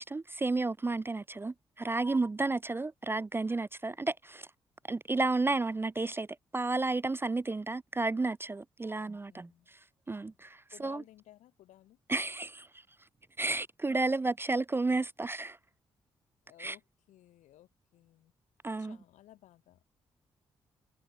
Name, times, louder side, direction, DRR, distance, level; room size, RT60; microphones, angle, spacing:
voice 1, 0.0-4.5 4.9-6.3 6.5-9.8 10.1-11.0 12.1-12.8 13.4-15.6 16.6-16.8 18.6-19.0, right 3 dB, 20° right, 0.3 m, -32 dB
voice 2, 9.0-9.7 10.1-10.4 10.7-12.0 16.4-18.3 18.8-19.8, left 13 dB, 75° left, 2.8 m, -57 dB
hypercardioid pair, 45°, 12 cm